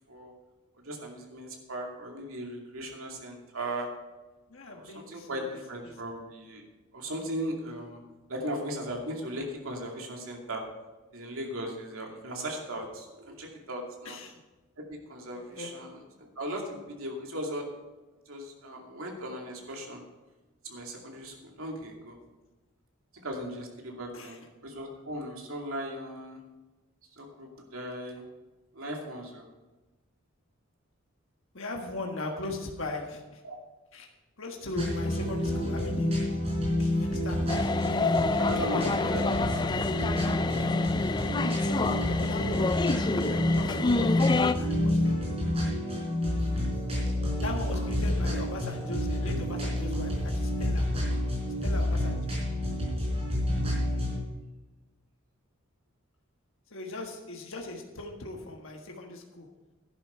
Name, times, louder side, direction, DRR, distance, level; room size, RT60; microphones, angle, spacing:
voice 1, 0.8-3.9 4.7-6.6 6.9-8.0 8.3-10.6 11.1-14.2 14.8-17.6 18.3-20.0 20.6-22.1 23.2-24.4 24.6-26.4 27.2-28.2 28.7-29.4 33.4-33.6 38.4-39.6 40.3-40.6, right 1 dB, 75° right, 0 dB, 2.6 m, -37 dB
voice 2, 4.5-5.5 5.8-5.9 14.0-14.3 15.6-15.7 24.1-24.4 31.5-33.4 33.9-34.1 34.4-36.1 36.8-37.4 38.7-39.4 41.6-45.2 47.4-50.8 51.6-52.4 56.7-59.5, left 2 dB, 65° left, 1 dB, 1.6 m, -39 dB
sound 1, 34.8-54.2, left 1 dB, 30° right, 4.5 m, -29 dB
sound 2, 37.5-44.5, left 3 dB, 20° left, 0.3 m, -29 dB
11.0 x 10.5 x 4.5 m, 1.1 s
head